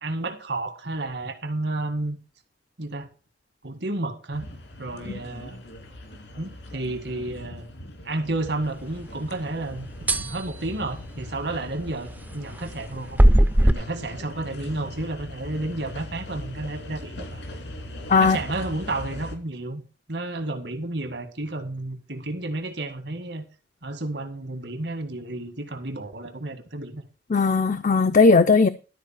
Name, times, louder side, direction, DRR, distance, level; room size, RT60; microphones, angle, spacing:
voice 1, 0.0-2.2 2.8-3.1 3.6-5.6 6.4-7.7 8.0-13.2 13.6-17.4 18.2-19.8 20.1-23.4 23.8-27.0, right 2 dB, 75° right, 2.0 m, -31 dB
sound 1, 4.3-19.4, left 1 dB, 80° left, 2.7 m, -40 dB
sound 2, 10.1-10.4 13.2-13.7, right 1 dB, 10° right, 0.5 m, -16 dB
voice 2, 27.3-28.7, left 4 dB, 45° left, 0.5 m, -17 dB
12.0 x 4.8 x 7.5 m
head